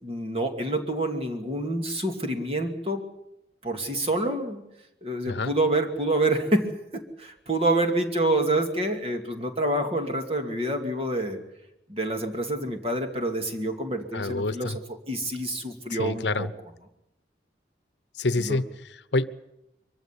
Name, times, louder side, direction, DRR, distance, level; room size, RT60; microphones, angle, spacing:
voice 1, 0.0-3.0 3.6-4.6 5.0-11.4 11.9-14.7 15.1-16.5 18.4-18.6, right 1 dB, 35° right, 4 dB, 2.5 m, -27 dB
voice 2, 14.1-14.8 16.0-16.5 18.2-19.3, left 2 dB, 80° left, 15 dB, 0.9 m, -27 dB
23.5 x 15.0 x 9.9 m, 0.88 s
head